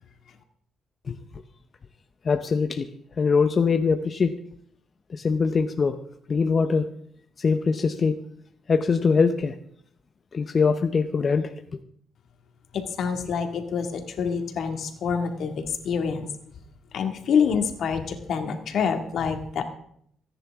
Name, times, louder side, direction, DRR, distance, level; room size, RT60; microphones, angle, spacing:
voice 1, 2.2-2.9 3.2-4.3 5.1-6.0 6.3-6.9 7.4-8.2 8.7-9.5 10.3-11.5, left 5 dB, 40° left, 7 dB, 0.8 m, -22 dB
voice 2, 12.7-16.3 16.9-19.6, left 6 dB, 65° left, 5 dB, 2.1 m, -26 dB
26.5 x 10.0 x 3.6 m, 0.67 s
cardioid pair, 90°, 0 cm